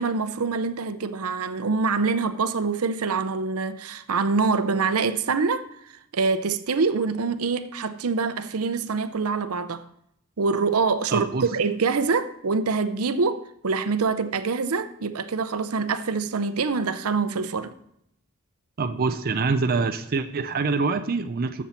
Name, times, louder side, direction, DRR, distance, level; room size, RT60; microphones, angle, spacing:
voice 1, 0.0-5.7 6.1-9.9 10.4-17.7, right 4 dB, 85° right, 0.7 m, -25 dB
voice 2, 11.1-11.5 18.8-21.6, right 4 dB, 45° right, 0.5 m, -25 dB
13.0 x 7.3 x 4.3 m
head